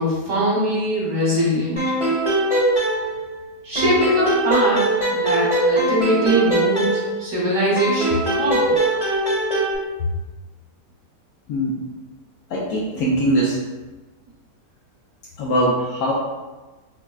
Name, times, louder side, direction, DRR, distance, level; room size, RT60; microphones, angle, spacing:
voice 1, 0.0-1.8 3.6-4.9 5.1-8.8, right 1 dB, 55° right, -6 dB, 1.2 m, -21 dB
sound 1, 1.8-3.4 3.8-7.4 7.8-9.8, right 1 dB, 25° left, 0.9 m, -21 dB
voice 2, 12.5-13.6 15.4-16.1, right 1 dB, 80° left, -5 dB, 1.2 m, -21 dB
5.8 x 2.1 x 2.2 m, 1.2 s
omnidirectional pair, 1.8 m